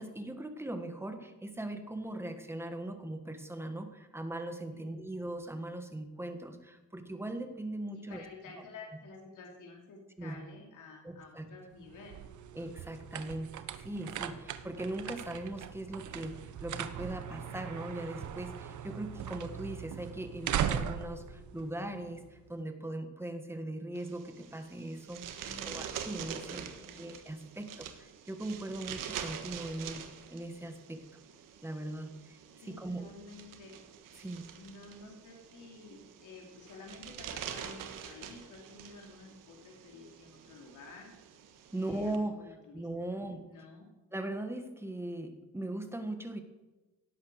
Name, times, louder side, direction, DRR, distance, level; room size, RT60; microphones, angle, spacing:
voice 1, 0.0-8.2 10.2-10.4 11.0-11.5 12.5-26.7 27.0-30.0 30.3-31.0 31.6-32.4 32.6-33.1 34.2-34.5 41.7-43.5 44.1-46.4, right 1 dB, 10° right, 7 dB, 1.5 m, -39 dB
voice 2, 4.7-5.0 7.9-12.3 25.4-25.8 26.7-27.1 32.6-33.7 34.6-41.1 41.7-43.9, left 3 dB, 70° left, 0 dB, 3.4 m, -51 dB
sound 1, 11.8-22.5, right 9 dB, 70° right, 1.0 m, -39 dB
sound 2, 24.0-42.2, right 8 dB, 90° right, 1.5 m, -46 dB
17.5 x 8.6 x 6.5 m, 1.1 s
cardioid pair, 135°, 31 cm